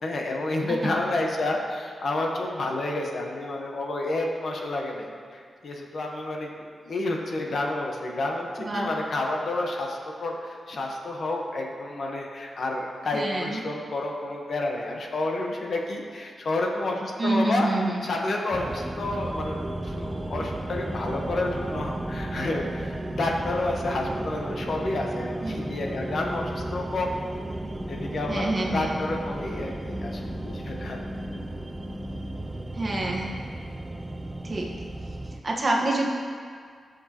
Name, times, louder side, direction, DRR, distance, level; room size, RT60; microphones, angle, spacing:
voice 1, 0.0-6.5 6.8-17.7 18.0-27.2 27.9-31.0, left 2 dB, 55° left, 0 dB, 1.2 m, -30 dB
voice 2, 13.1-13.6 17.2-18.0 25.4-25.6 28.3-28.9 32.7-33.3 34.4-34.7 35.4-36.1, right 2 dB, 30° right, -2 dB, 1.4 m, -26 dB
sound 1, 18.5-35.4, right 1 dB, 15° right, 0.4 m, -34 dB
18.5 x 6.4 x 3.0 m, 2.1 s
wide cardioid pair, 150°, 0 cm